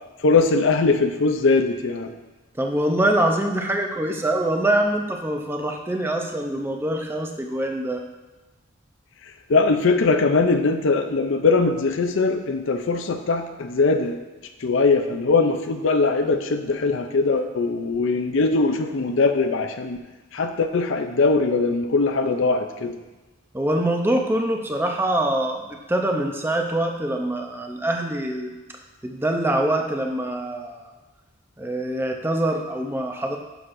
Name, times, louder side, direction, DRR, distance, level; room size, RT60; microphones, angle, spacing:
voice 1, 0.2-2.1 9.5-14.2 14.6-20.0 20.3-23.0, left 3 dB, 65° left, 7 dB, 0.5 m, -21 dB
voice 2, 2.6-8.0 23.5-28.5 29.0-30.9 31.6-33.4, right 1 dB, 10° right, 3 dB, 0.5 m, -24 dB
9.8 x 6.3 x 2.6 m, 1.1 s
head